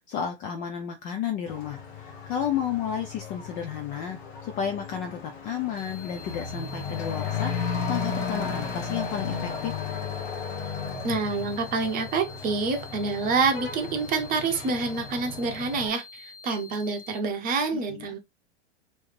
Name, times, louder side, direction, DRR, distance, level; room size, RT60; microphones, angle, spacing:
voice 1, 0.1-7.5 7.9-9.8 17.7-18.1, left 8 dB, 25° left, 0.3 m, -32 dB
Truck / Accelerating revving vroom, 1.5-15.9, left 6 dB, 45° left, 1.1 m, -35 dB
sound 1, 5.8-17.2, left 4 dB, 90° left, 0.7 m, -47 dB
voice 2, 11.0-18.2, right 4 dB, 25° right, 0.8 m, -27 dB
3.1 x 2.7 x 3.2 m
hypercardioid pair, 105°, 35 cm